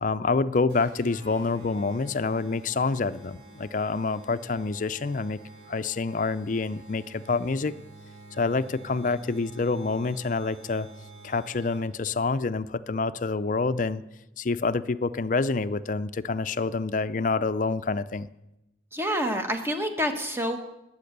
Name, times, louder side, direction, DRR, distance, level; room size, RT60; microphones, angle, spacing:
voice 1, 0.0-5.4 5.7-7.7 8.4-10.9 11.2-14.0 14.4-18.3, left 4 dB, 45° left, 14 dB, 0.5 m, -27 dB
sound 1, 0.7-12.1, right 2 dB, 85° right, 5.9 m, -49 dB
voice 2, 18.9-20.6, equal, 15° right, 5 dB, 1.3 m, -28 dB
20.5 x 8.7 x 6.7 m, 0.92 s
head